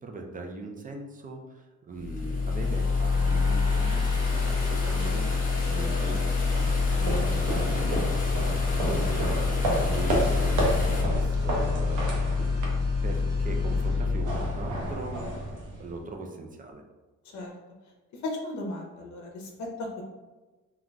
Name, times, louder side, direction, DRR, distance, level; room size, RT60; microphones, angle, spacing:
voice 1, 0.0-8.0 8.8-12.3 13.0-15.1 15.8-16.8, right 2 dB, 30° right, 2 dB, 0.5 m, -39 dB
sound 1, 2.0-11.0, left 2 dB, 30° left, 0.8 m, -37 dB
sound 2, 2.0-15.1, left 4 dB, 10° right, 0.9 m, -27 dB
sound 3, 6.4-16.1, right 1 dB, 75° right, 0.8 m, -32 dB
voice 2, 18.2-20.0, left 2 dB, 65° left, 0 dB, 0.7 m, -35 dB
3.7 x 2.3 x 2.2 m, 1.2 s
cardioid pair, 90°, 30 cm